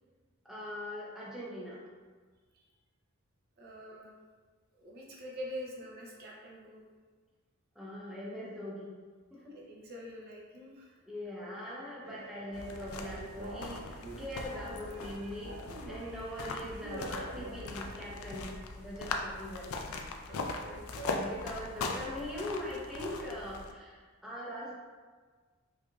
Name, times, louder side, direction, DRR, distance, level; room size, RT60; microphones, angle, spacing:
voice 1, 0.4-1.8 7.7-8.9 9.3-9.5 11.1-15.6 15.9-20.0 21.1-24.7, left 1 dB, ahead, -7 dB, 0.6 m, -41 dB
voice 2, 3.6-4.1 4.8-6.8 9.5-10.9 16.1-16.2 20.3-21.3, equal, 45° right, -3 dB, 0.5 m, -45 dB
sound 1, 12.0-18.6, right 2 dB, 75° right, 1.2 m, -47 dB
sound 2, 12.5-23.7, left 3 dB, 85° left, 0.4 m, -40 dB
4.7 x 2.5 x 2.3 m, 1.5 s
head